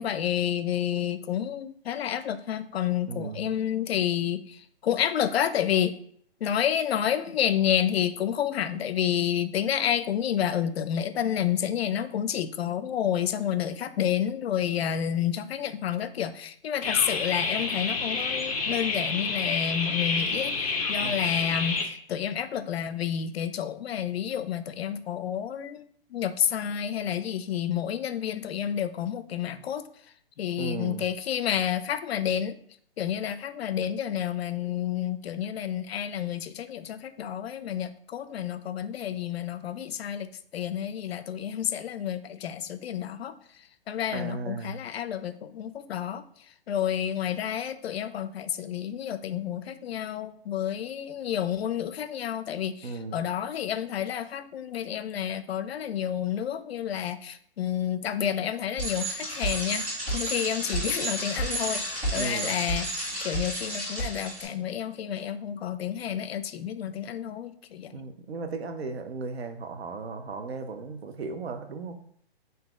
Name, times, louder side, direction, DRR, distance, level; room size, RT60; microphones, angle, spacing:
voice 1, 0.0-6.0 6.4-25.9 26.1-29.8 30.4-32.6 33.0-43.3 43.9-46.2 46.7-68.0, left 9 dB, 80° left, 12 dB, 0.5 m, -30 dB
voice 2, 3.1-3.5 21.0-21.4 30.6-31.1 44.1-44.8 52.8-53.2 62.1-62.6 67.9-72.0, right 4 dB, 85° right, 7 dB, 0.7 m, -36 dB
sound 1, 16.8-21.8, left 4 dB, 35° left, 0.6 m, -29 dB
Bicycle, 58.8-64.4, right 1 dB, 25° right, 1.6 m, -31 dB
3.9 x 2.7 x 3.5 m, 0.63 s
hypercardioid pair, 160°, 31 cm